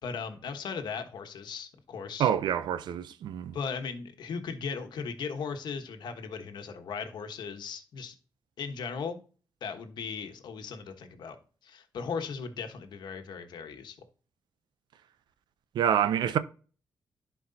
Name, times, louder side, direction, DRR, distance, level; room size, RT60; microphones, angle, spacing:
voice 1, 0.0-2.3 3.5-8.2 8.6-9.2 9.6-11.4 11.6-14.0, left 5 dB, 80° left, 1.2 m, -37 dB
voice 2, 2.2-3.6 15.7-16.4, right 9 dB, 90° right, 0.6 m, -27 dB
11.5 x 4.6 x 2.7 m
cardioid pair, 75°, 7 cm